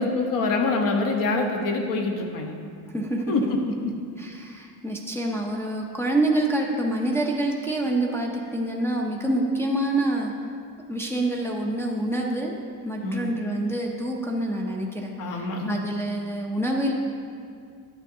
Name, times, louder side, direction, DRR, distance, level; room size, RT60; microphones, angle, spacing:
voice 1, 0.0-2.5 3.3-3.9 13.0-13.3 15.2-15.9, left 3 dB, 60° left, 3 dB, 1.0 m, -25 dB
voice 2, 2.9-3.2 4.2-10.3 10.9-12.6 12.8-15.1 15.4-16.9, right 1 dB, 5° left, -2 dB, 0.5 m, -26 dB
10.5 x 6.6 x 2.7 m, 2.2 s
cardioid pair, 145°, 37 cm